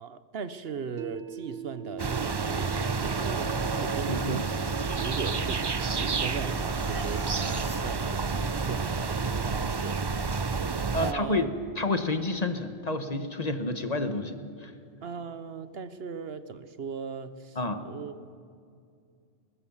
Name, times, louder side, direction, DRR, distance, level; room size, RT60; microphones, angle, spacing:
voice 1, 0.0-4.5 4.9-10.2 11.0-11.6 15.0-17.6 17.8-18.3, right 6 dB, 65° right, 13 dB, 1.1 m, -38 dB
sound 1, 1.0-13.1, right 8 dB, 85° right, 1.3 m, -46 dB
sound 2, 2.0-11.1, right 4 dB, 30° right, 0.5 m, -29 dB
sound 3, 3.3-8.2, right 1 dB, 10° left, 4.2 m, -48 dB
voice 2, 4.1-4.4 10.9-11.5 11.8-14.7 17.6-17.8, left 2 dB, 35° left, 9 dB, 1.3 m, -29 dB
21.0 x 20.0 x 7.2 m, 2.4 s
omnidirectional pair, 1.1 m